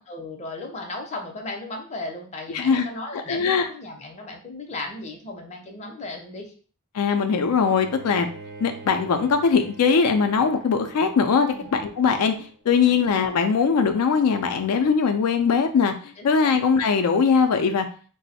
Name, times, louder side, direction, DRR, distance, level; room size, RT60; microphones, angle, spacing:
voice 1, 0.0-6.5 11.5-11.7 12.7-13.0 16.2-16.6, left 2 dB, 30° left, 2 dB, 0.5 m, -36 dB
voice 2, 2.5-2.9 3.1-3.7 6.9-8.3 8.6-12.3 12.7-15.9 16.2-17.9, left 5 dB, 85° left, 6 dB, 0.4 m, -21 dB
Bowed string instrument, 7.6-12.6, right 4 dB, 55° right, 0.8 m, -43 dB
3.0 x 2.0 x 4.1 m, 0.42 s
head